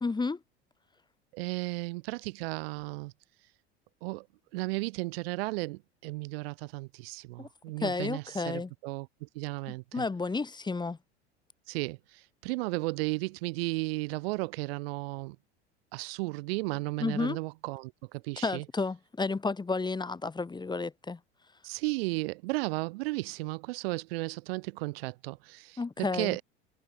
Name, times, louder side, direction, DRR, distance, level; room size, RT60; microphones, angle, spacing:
voice 1, 0.0-0.4 7.4-7.5 7.8-8.7 9.9-11.0 17.0-17.4 18.4-21.2 25.8-26.4, left 3 dB, 10° left, 1.4 m, -31 dB
voice 2, 1.3-3.1 4.0-4.3 4.5-10.0 11.7-15.4 15.9-18.6 21.6-26.4, right 24 dB, 60° right, 1.1 m, -34 dB
figure-of-eight pair, 75°, 34 cm